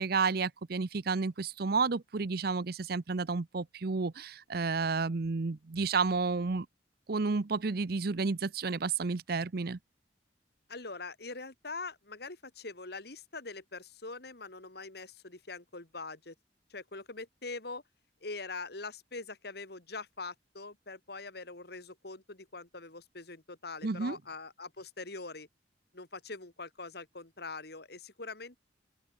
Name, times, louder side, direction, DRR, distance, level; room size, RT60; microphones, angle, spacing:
voice 1, 0.0-6.7 7.1-9.8 23.8-24.2, right 4 dB, 55° right, 0.7 m, -31 dB
voice 2, 10.7-16.3 16.7-17.8 18.2-25.5 25.9-28.6, left 3 dB, 60° left, 2.6 m, -43 dB
open air
head